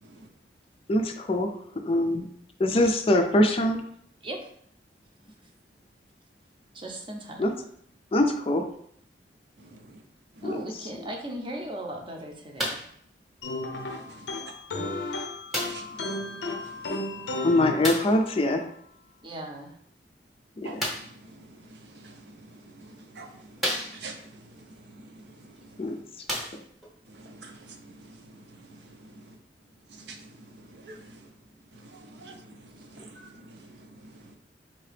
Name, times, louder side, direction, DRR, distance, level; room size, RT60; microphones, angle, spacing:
voice 1, 0.9-1.5 1.8-2.3 2.6-3.8 7.4-7.5 8.1-8.6 10.4-10.6 17.4-18.6 20.7-20.8 25.8-26.0, left 1 dB, 30° left, 5 dB, 0.4 m, -23 dB
voice 2, 6.7-7.4 10.4-12.8 19.2-19.8, right 1 dB, 30° right, 2 dB, 0.6 m, -37 dB
voice 3, 9.6-10.0 10.3-10.5 13.7-14.4 15.7-17.6 20.6-26.0 27.1-29.4 29.9-31.3 31.7-34.4, right 2 dB, 70° right, 4 dB, 0.6 m, -48 dB
sound 1, 12.6-13.0 13.9-14.0 15.5-15.9 17.8-18.2 20.8-21.2 22.2-22.3 22.9-23.0 23.6-24.3 25.6-25.7 26.2-26.9 27.7-27.8, equal, ahead, 0.8 m, -32 dB
sound 2, 13.4-18.5, left 2 dB, 85° left, 0.5 m, -34 dB
3.9 x 2.8 x 3.3 m, 0.66 s
head